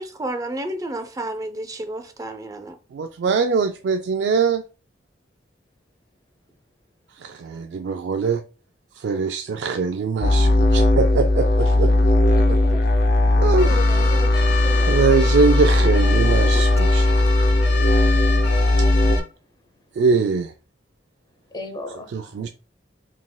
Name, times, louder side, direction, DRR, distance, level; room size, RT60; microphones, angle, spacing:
voice 1, 0.0-2.8, right 1 dB, 20° right, 0.5 m, -31 dB
voice 2, 2.9-4.6 7.2-8.4 9.0-11.9 12.5-12.8 13.4-13.8 14.4-14.6 14.9-17.2 18.8-18.9 19.9-20.5 22.1-22.5, right 5 dB, 75° right, 0.3 m, -22 dB
sound 1, 10.2-19.2, left 2 dB, 50° left, 0.5 m, -17 dB
voice 3, 13.2-15.3 21.5-22.1, left 2 dB, 25° left, 0.8 m, -35 dB
sound 2, 13.6-19.2, left 5 dB, 85° left, 0.8 m, -30 dB
4.0 x 3.5 x 2.2 m
head